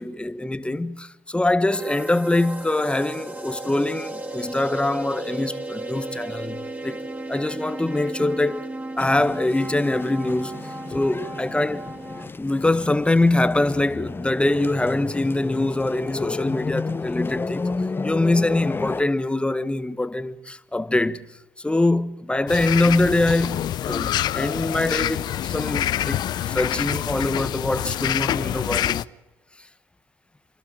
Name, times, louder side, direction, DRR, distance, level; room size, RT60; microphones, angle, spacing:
voice 1, 0.0-7.0 7.3-8.6 9.0-10.6 10.9-11.9 12.4-17.7 18.0-29.1, left 2 dB, 15° left, 1.5 m, -23 dB
sound 1, 1.7-12.3, right 2 dB, 20° right, 3.0 m, -35 dB
sound 2, 9.0-19.0, left 3 dB, 30° left, 0.9 m, -32 dB
sound 3, 22.5-29.0, left 12 dB, 75° left, 0.6 m, -26 dB
30.0 x 12.0 x 9.0 m
supercardioid pair, 55°, 7 cm